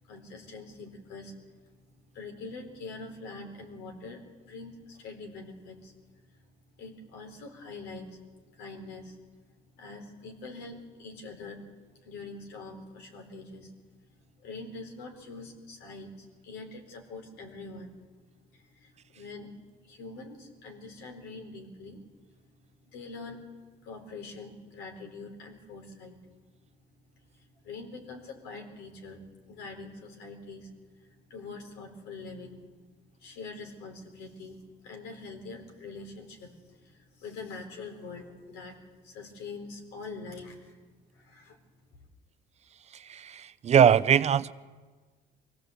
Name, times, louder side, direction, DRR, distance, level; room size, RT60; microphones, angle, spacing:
voice 1, 0.0-1.4 2.1-5.9 6.4-6.5 6.8-8.2 8.5-9.2 9.7-11.6 12.0-13.7 14.4-18.0 18.5-19.5 19.8-22.0 22.9-23.4 23.8-26.2 27.3-32.6 33.2-38.8 39.0-40.8 41.1-41.6, left 3 dB, 85° left, 3 dB, 4.2 m, -44 dB
voice 2, 42.9-44.5, right 8 dB, 40° right, 14 dB, 0.6 m, -22 dB
23.5 x 17.0 x 8.1 m, 1.4 s
cardioid pair, 110°, 17 cm